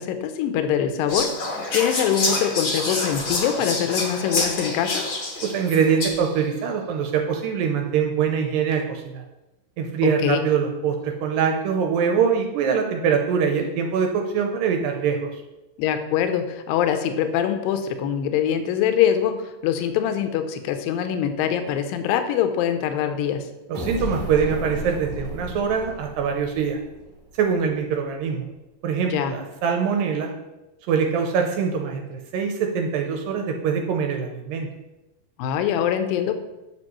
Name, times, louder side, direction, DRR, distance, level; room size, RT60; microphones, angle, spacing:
voice 1, 0.0-5.0 10.0-10.5 15.8-23.5 29.1-29.3 35.4-36.3, left 9 dB, 80° left, 8 dB, 2.3 m, -23 dB
Whispering, 1.1-6.4, left 2 dB, 65° left, 1.2 m, -27 dB
voice 2, 5.4-9.2 9.8-15.4 23.7-26.8 27.4-28.5 28.8-30.3 30.9-34.7, right 6 dB, 80° right, 3 dB, 2.2 m, -23 dB
sound 1, 23.7-27.4, equal, 25° right, 1.0 m, -33 dB
8.8 x 6.0 x 3.0 m, 1.0 s
omnidirectional pair, 4.2 m